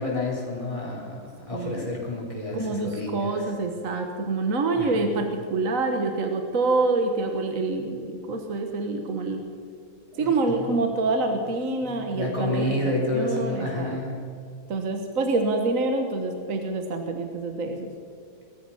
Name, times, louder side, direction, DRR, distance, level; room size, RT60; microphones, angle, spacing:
voice 1, 0.0-3.4 4.7-5.0 10.1-10.7 11.8-14.2, left 2 dB, 15° left, -3 dB, 3.9 m, -30 dB
voice 2, 1.5-1.9 2.5-9.4 10.2-14.0 14.7-17.9, right 3 dB, 45° right, 5 dB, 1.5 m, -26 dB
19.5 x 13.0 x 5.6 m, 2.3 s
omnidirectional pair, 2.1 m